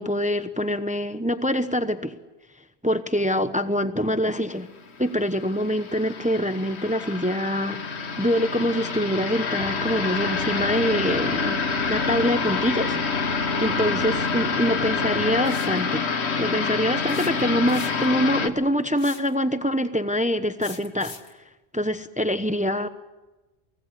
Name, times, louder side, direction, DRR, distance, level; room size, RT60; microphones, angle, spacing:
voice 1, 0.0-2.1 2.8-4.7 5.0-11.6 11.9-16.1 16.4-21.1 21.7-22.9, equal, 10° right, 10 dB, 0.9 m, -25 dB
sound 1, 5.0-18.5, left 5 dB, 90° left, 1.6 m, -27 dB
sound 2, 9.6-15.3, right 5 dB, 85° right, 1.6 m, -38 dB
sound 3, 15.5-15.8 17.1-18.2 19.0-19.3 20.6-21.3, left 4 dB, 60° left, 1.8 m, -42 dB
24.5 x 18.5 x 9.8 m, 1.1 s
omnidirectional pair, 1.1 m